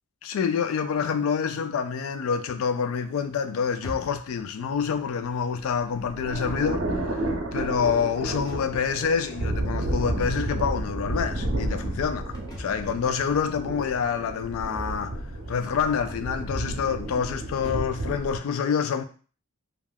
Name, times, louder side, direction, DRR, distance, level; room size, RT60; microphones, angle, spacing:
voice 1, 0.2-7.2 7.5-15.2 15.5-19.0, left 6 dB, 80° left, 0.3 m, -27 dB
sound 1, 3.7-18.1, equal, 15° left, 0.5 m, -46 dB
sound 2, 5.3-18.4, right 1 dB, 65° right, 0.5 m, -31 dB
3.3 x 2.3 x 2.2 m
head